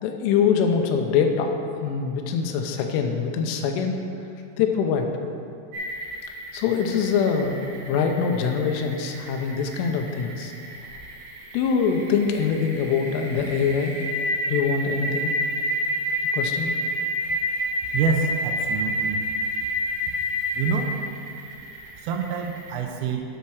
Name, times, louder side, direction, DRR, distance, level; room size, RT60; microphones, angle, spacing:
voice 1, 0.0-4.0 4.6-5.1 6.5-10.5 11.5-14.0 14.5-15.3 16.3-16.8, left 6 dB, 80° left, 4 dB, 3.1 m, -24 dB
sound 1, 5.7-22.7, equal, 55° right, 3.0 m, -29 dB
voice 2, 17.9-19.2 20.5-20.9 22.0-23.2, right 6 dB, 85° right, 2 dB, 3.2 m, -26 dB
10.0 x 5.6 x 6.2 m, 2.5 s
omnidirectional pair, 5.9 m